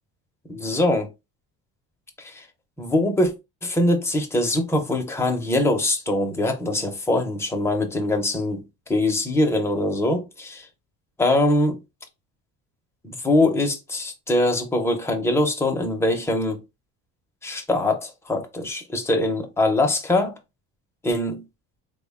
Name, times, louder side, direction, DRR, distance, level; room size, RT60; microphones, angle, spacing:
voice 1, 0.5-1.1 2.2-2.4 2.8-3.3 3.6-8.6 8.9-10.6 11.2-11.8 13.0-16.6 17.4-20.4 21.0-21.4, left 1 dB, 10° left, 0.4 m, -23 dB
3.6 x 2.1 x 3.4 m
cardioid pair, 175°, 35 cm